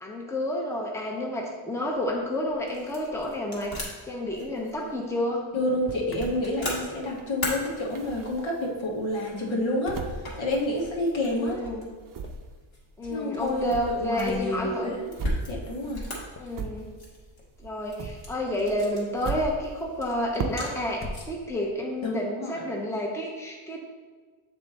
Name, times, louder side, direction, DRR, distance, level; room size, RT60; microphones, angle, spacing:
voice 1, 0.0-5.4 11.3-11.9 13.0-14.9 16.4-16.9 17.6-23.8, left 1 dB, 5° left, -2 dB, 0.8 m, -30 dB
sound 1, 1.9-21.5, left 1 dB, 45° left, 1.6 m, -40 dB
voice 2, 5.5-10.0 10.3-11.6 13.0-15.1 15.5-16.0 22.0-22.6, left 1 dB, 65° left, -2 dB, 1.4 m, -29 dB
Motor vehicle (road), 5.7-6.3 9.8-10.2 12.2-12.5 14.2-14.7 16.3-16.6 20.9-21.8, left 2 dB, 30° left, 0.5 m, -42 dB
sound 2, 6.9-8.8 9.3-11.4 11.6-17.3 17.6-21.0, right 5 dB, 40° right, 0.5 m, -39 dB
7.1 x 3.5 x 4.1 m, 1.5 s
wide cardioid pair, 120°, 50 cm